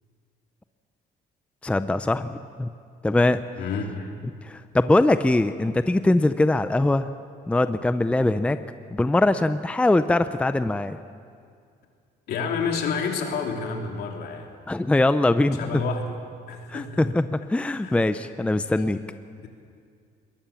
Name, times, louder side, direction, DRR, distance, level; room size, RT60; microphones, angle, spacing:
voice 1, 1.6-2.7 3.0-3.4 4.4-7.1 7.5-8.6 8.9-11.0 14.7-15.8 16.7-19.0, left 2 dB, 5° left, 11 dB, 0.6 m, -22 dB
voice 2, 3.6-4.1 12.3-14.5 15.5-16.2 16.5-17.0 17.8-18.0, left 5 dB, 70° left, 2 dB, 3.1 m, -29 dB
22.0 x 19.5 x 7.2 m, 2.3 s
cardioid pair, 110°, 17 cm